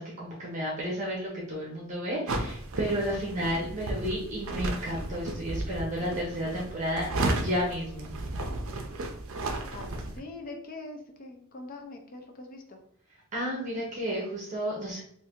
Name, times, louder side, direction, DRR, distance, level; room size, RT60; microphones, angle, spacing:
voice 1, 0.0-8.1 13.3-15.0, equal, 35° right, -4 dB, 0.8 m, -32 dB
sound 1, 2.3-10.2, right 2 dB, 65° right, 0.5 m, -33 dB
voice 2, 9.7-12.8, left 2 dB, 40° left, 3 dB, 0.5 m, -43 dB
2.6 x 2.5 x 3.5 m, 0.66 s
head